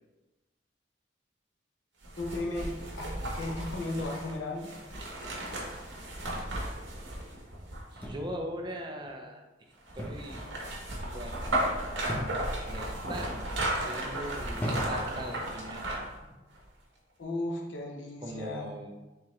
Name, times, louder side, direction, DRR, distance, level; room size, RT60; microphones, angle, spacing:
sound 1, 2.0-8.2 9.9-16.2 16.5-16.6, right 1 dB, 70° right, 1.1 m, -35 dB
voice 1, 2.2-3.1 3.3-4.7 17.2-18.7, left 2 dB, 85° left, 0 dB, 0.8 m, -35 dB
voice 2, 7.9-9.4 9.9-10.5 11.1-11.4 12.7-16.1 18.2-18.9, equal, 25° right, 2 dB, 0.5 m, -40 dB
sound 2, 8.0-8.5 10.0-10.4 10.6-11.1 12.1-12.6 13.3-13.7 14.5-15.2 16.1-16.4, equal, 10° left, 0.7 m, -37 dB
4.5 x 3.5 x 3.1 m, 1.1 s
head